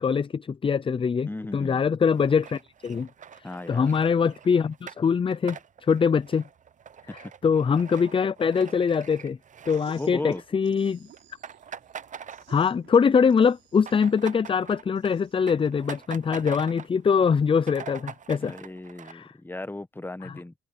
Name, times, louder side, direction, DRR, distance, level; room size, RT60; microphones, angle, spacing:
voice 1, 0.0-3.1 3.4-6.4 7.1-9.4 9.7-11.1 12.5-18.5 19.1-19.3 20.2-20.3, left 6 dB, 25° left, 0.5 m, -23 dB
voice 2, 1.3-1.8 3.4-3.9 7.1-7.2 10.0-10.4 18.4-20.5, left 2 dB, 10° left, 1.2 m, -36 dB
sound 1, 2.1-10.5 10.7-10.9 11.2-12.9 13.3-17.0 17.4-17.5 17.6-19.1, right 7 dB, 40° right, 0.7 m, -44 dB
sound 2, 9.7-15.7, right 10 dB, 75° right, 7.1 m, -55 dB
open air
cardioid pair, 90°, 20 cm